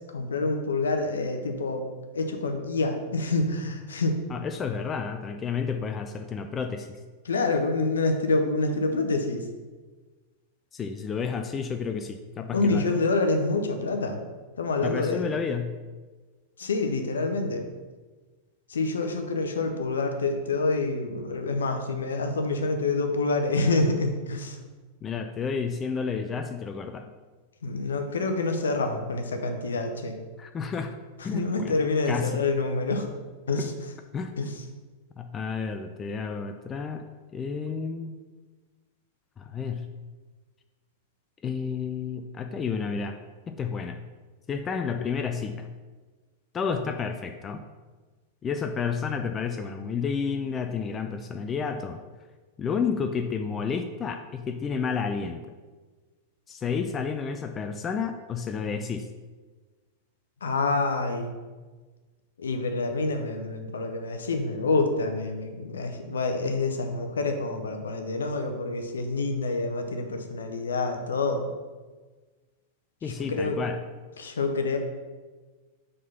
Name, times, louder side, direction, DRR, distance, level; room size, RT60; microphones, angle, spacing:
voice 1, 0.1-1.8 2.1-4.2 7.2-9.4 12.5-14.2 14.6-15.3 16.6-17.6 18.7-24.6 27.6-30.1 31.3-33.1 33.5-33.7 34.4-34.5 60.4-61.3 62.4-71.5 73.1-73.6 74.2-74.8, left 3 dB, 70° left, 5 dB, 0.6 m, -27 dB
voice 2, 4.3-7.0 10.7-13.0 14.8-15.8 25.0-27.1 30.4-30.9 31.2-31.8 32.1-32.5 33.6-33.7 34.1-34.5 35.2-37.0 37.3-38.2 39.4-39.9 41.4-43.2 43.5-44.0 44.5-45.7 46.5-47.6 48.4-52.0 52.6-55.6 56.5-59.1 73.0-73.8, left 6 dB, 25° left, 6 dB, 0.3 m, -31 dB
4.6 x 3.7 x 5.5 m, 1.3 s
figure-of-eight pair, 90°, 0 cm